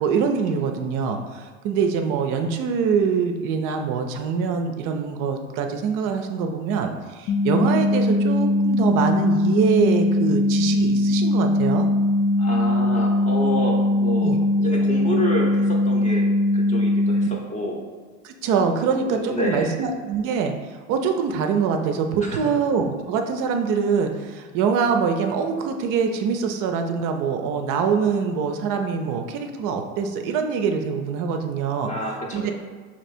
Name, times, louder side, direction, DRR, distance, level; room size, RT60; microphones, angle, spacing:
voice 1, 0.0-11.9 14.2-14.4 18.2-31.9 32.3-32.5, right 6 dB, 50° right, 5 dB, 0.5 m, -24 dB
sound 1, 7.3-17.3, left 1 dB, 60° left, 0.6 m, -20 dB
voice 2, 12.4-17.8 19.1-19.7 22.2-22.5 31.8-32.5, equal, 20° left, -2 dB, 0.7 m, -29 dB
3.3 x 2.9 x 4.2 m, 1.6 s
hypercardioid pair, 85°, 41 cm